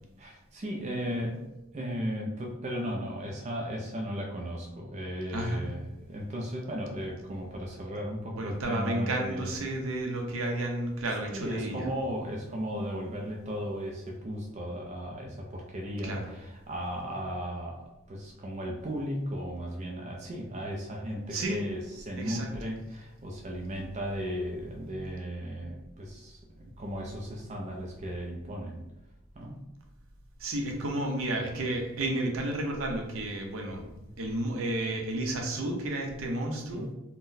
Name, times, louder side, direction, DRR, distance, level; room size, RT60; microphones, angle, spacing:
voice 1, 0.2-1.4 1.7-9.6 11.3-28.8 29.3-29.6 36.7-36.9, equal, 35° right, 0 dB, 0.3 m, -36 dB
voice 2, 5.3-5.7 8.4-11.9 16.0-16.2 21.3-21.6 22.2-22.7 30.4-36.9, right 1 dB, 75° right, 2 dB, 0.6 m, -32 dB
3.7 x 2.1 x 2.6 m, 0.97 s
head